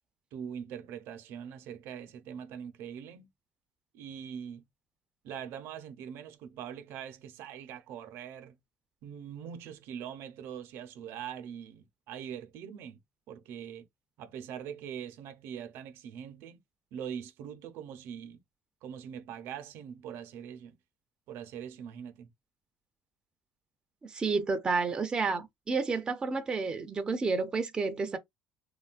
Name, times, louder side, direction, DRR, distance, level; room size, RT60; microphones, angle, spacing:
voice 1, 0.3-3.3 3.9-4.6 5.2-8.6 9.0-13.0 13.3-13.9 14.2-16.6 16.9-18.4 18.8-20.8 21.3-22.3, right 8 dB, 70° right, 0.6 m, -42 dB
voice 2, 24.0-28.2, right 4 dB, 20° right, 0.4 m, -30 dB
3.1 x 2.2 x 2.4 m
cardioid pair, 135°, 4 cm